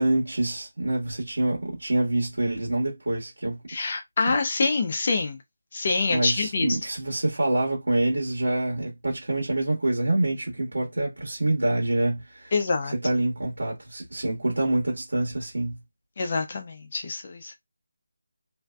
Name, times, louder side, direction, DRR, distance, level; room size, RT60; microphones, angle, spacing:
voice 1, 0.0-3.6 4.3-4.4 6.1-12.5 12.9-15.8, right 2 dB, 85° right, 1.2 m, -26 dB
voice 2, 3.7-5.4 5.7-6.8 12.5-12.9 16.2-17.6, left 3 dB, 25° left, 0.4 m, -26 dB
2.5 x 2.2 x 2.3 m
figure-of-eight pair, 180°, 0 cm